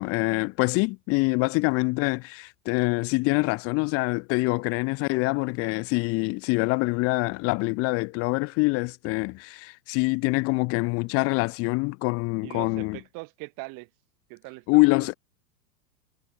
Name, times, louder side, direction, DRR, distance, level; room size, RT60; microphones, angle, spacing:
voice 1, 0.0-13.0 14.7-15.1, left 28 dB, 30° left, 0.7 m, -25 dB
voice 2, 12.4-13.9 14.3-14.9, right 28 dB, 40° right, 4.9 m, -41 dB
figure-of-eight pair, 100°, 48 cm